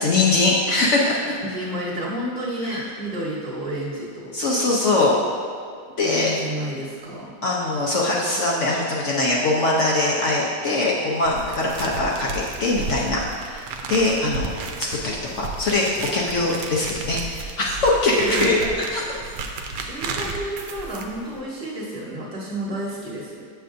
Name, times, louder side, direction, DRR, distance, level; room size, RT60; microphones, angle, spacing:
voice 1, 0.0-1.3 2.6-2.8 4.3-5.2 6.0-6.3 7.4-14.5 14.8-15.9 16.1-18.6 18.9-19.2, left 2 dB, 60° left, -3 dB, 0.8 m, -22 dB
voice 2, 1.4-4.4 6.0-7.3 11.3-11.4 18.2-18.5 19.7-23.5, right 1 dB, 30° right, -6 dB, 1.2 m, -30 dB
sound 1, 11.3-21.4, right 3 dB, 80° right, 1.2 m, -33 dB
7.9 x 6.8 x 2.5 m, 2.2 s
omnidirectional pair, 1.9 m